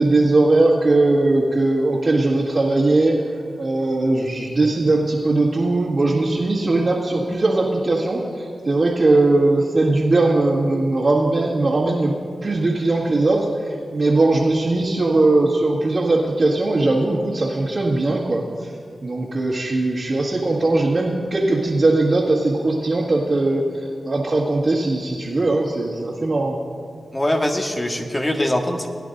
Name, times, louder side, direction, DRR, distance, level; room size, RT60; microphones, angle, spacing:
voice 1, 0.0-3.2 3.6-12.2 12.4-18.7 19.0-23.6 24.0-26.6, right 2 dB, 50° right, -7 dB, 1.8 m, -19 dB
voice 2, 27.1-28.9, left 1 dB, 25° left, 2 dB, 1.5 m, -22 dB
21.5 x 10.0 x 2.6 m, 2.3 s
cardioid pair, 45°, 0 cm